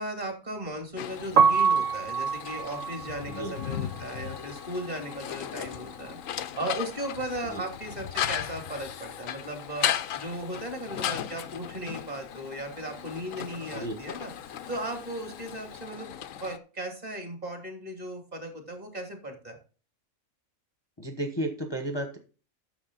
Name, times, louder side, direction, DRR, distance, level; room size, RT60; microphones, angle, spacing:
voice 1, 0.0-6.2 6.5-19.6, right 1 dB, 30° right, 4 dB, 3.0 m, -37 dB
sound 1, 1.0-16.6, left 10 dB, 70° left, 1.1 m, -36 dB
Piano, 1.2-7.2 7.4-9.0 9.3-15.7, right 6 dB, 65° right, 1.4 m, -29 dB
voice 2, 21.0-22.2, right 1 dB, 20° left, 5 dB, 1.1 m, -33 dB
11.0 x 6.9 x 4.1 m, 0.36 s
omnidirectional pair, 1.5 m